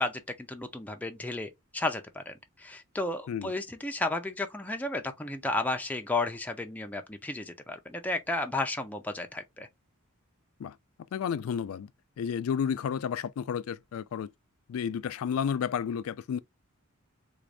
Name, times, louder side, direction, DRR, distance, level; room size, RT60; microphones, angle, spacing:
voice 1, 0.0-2.3 2.6-9.7, left 2 dB, 5° left, 0.4 m, -33 dB
voice 2, 11.1-11.9 12.2-14.3 14.7-16.4, left 7 dB, 70° left, 0.3 m, -31 dB
3.5 x 2.6 x 3.2 m
head